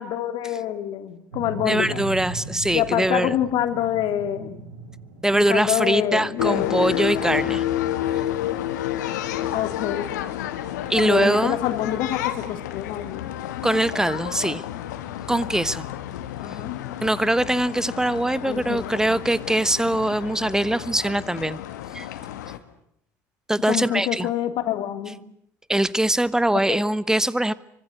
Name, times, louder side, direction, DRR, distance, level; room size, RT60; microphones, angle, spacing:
voice 1, 0.0-2.0 2.7-4.6 5.3-7.3 9.5-10.1 11.0-13.3 16.4-16.8 18.5-18.9 23.7-25.2 26.5-26.8, left 11 dB, 55° left, 8 dB, 3.0 m, -26 dB
sound 1, 1.3-9.5, right 2 dB, 80° right, 3.3 m, -40 dB
voice 2, 1.6-3.4 5.2-7.6 8.1-8.2 10.9-11.6 13.6-14.6 15.3-15.9 17.0-21.6 21.9-22.1 23.5-24.3 25.7-27.5, right 1 dB, 5° right, 18 dB, 1.2 m, -22 dB
sound 2, 6.4-22.6, left 12 dB, 70° left, 2.1 m, -30 dB
27.0 x 24.5 x 8.1 m, 0.70 s
figure-of-eight pair, 60°, 10 cm